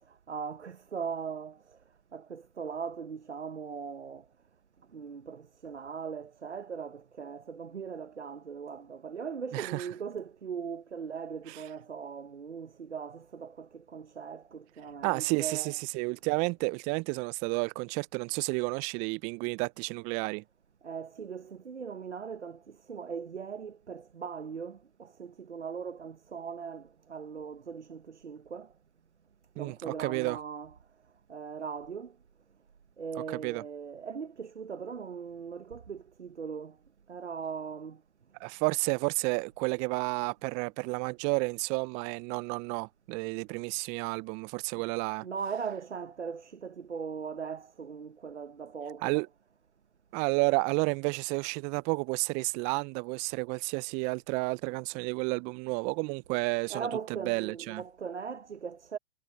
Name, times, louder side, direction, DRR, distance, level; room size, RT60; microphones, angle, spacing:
voice 1, 0.3-1.6 2.1-4.2 4.9-15.7 20.8-28.7 29.6-30.7 31.3-32.1 33.0-36.8 37.1-38.0 45.2-49.2 56.7-59.0, right 6 dB, 85° right, 1.0 m, -39 dB
voice 2, 9.5-9.9 11.5-11.6 15.0-20.4 29.6-30.4 33.3-33.6 38.4-45.3 49.0-49.3 50.1-57.8, right 31 dB, 25° right, 0.4 m, -31 dB
figure-of-eight pair, 110°, 33 cm